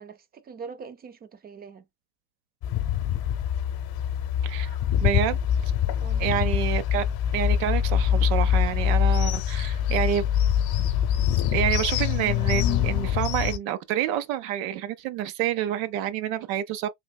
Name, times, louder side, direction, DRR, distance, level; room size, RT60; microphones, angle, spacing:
voice 1, 0.0-1.9 6.0-6.3, right 5 dB, 20° right, 0.4 m, -43 dB
sound 1, 2.6-13.6, left 9 dB, 55° left, 0.8 m, -24 dB
voice 2, 4.4-4.8 5.0-5.4 6.2-7.0 7.3-10.2 11.5-16.9, right 11 dB, 75° right, 0.7 m, -28 dB
3.4 x 3.1 x 2.2 m
cardioid pair, 120°, 46 cm